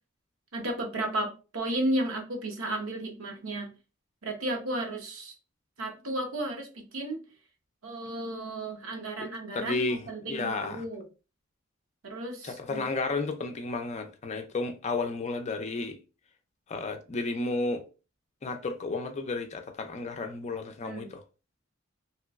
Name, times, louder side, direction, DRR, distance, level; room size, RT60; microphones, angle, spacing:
voice 1, 0.5-3.7 4.2-5.3 5.8-7.2 7.8-11.0 12.0-12.8 20.8-21.1, right 1 dB, 75° right, 0.9 m, -33 dB
voice 2, 9.2-10.8 12.4-16.0 16.7-17.8 18.4-21.2, left 3 dB, 35° left, 0.4 m, -32 dB
3.0 x 2.9 x 2.3 m
head